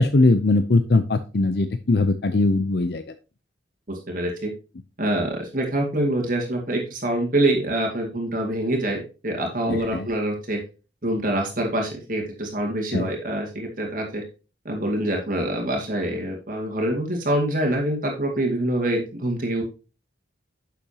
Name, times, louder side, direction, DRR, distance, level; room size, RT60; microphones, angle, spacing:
voice 1, 0.0-3.0 9.7-10.1 12.9-13.1, left 2 dB, 60° left, 10 dB, 0.6 m, -20 dB
voice 2, 3.9-4.5 5.0-10.6 11.0-14.2 14.6-19.6, right 1 dB, 45° right, 1 dB, 2.1 m, -25 dB
10.0 x 6.9 x 2.8 m, 0.32 s
head